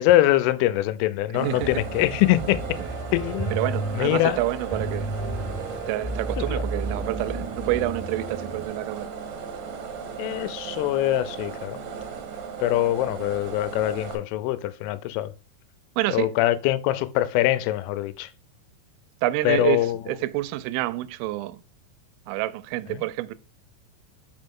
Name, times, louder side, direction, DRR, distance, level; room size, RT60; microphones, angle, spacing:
voice 1, 0.0-2.6 3.1-3.5 3.9-4.4 6.4-6.6 10.2-11.8 12.6-15.3 16.1-18.3 19.4-20.0 22.9-23.0, left 15 dB, 85° left, 3.1 m, -23 dB
sound 1, 1.3-14.1, right 6 dB, 70° right, 2.2 m, -36 dB
voice 2, 1.3-1.8 2.8-2.9 3.5-5.2 5.9-9.1 16.0-16.4 19.2-21.6 22.3-23.3, right 16 dB, 85° right, 3.1 m, -28 dB
Piano, 1.6-8.6, right 2 dB, 65° left, 0.5 m, -33 dB
5.9 x 5.3 x 3.6 m
omnidirectional pair, 5.7 m